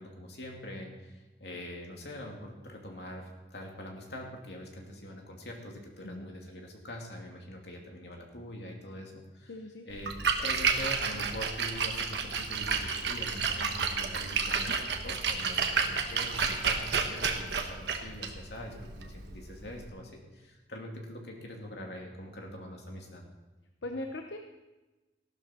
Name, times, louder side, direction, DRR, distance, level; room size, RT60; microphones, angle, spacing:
voice 1, 0.0-10.1 10.4-23.2, left 1 dB, 70° left, 0 dB, 2.6 m, -43 dB
voice 2, 9.5-9.8 23.8-24.4, left 1 dB, 85° left, 4 dB, 0.9 m, -39 dB
Splash splatter, 9.9-19.9, right 5 dB, 70° right, 1.2 m, -31 dB
15.0 x 12.5 x 4.4 m, 1.1 s
head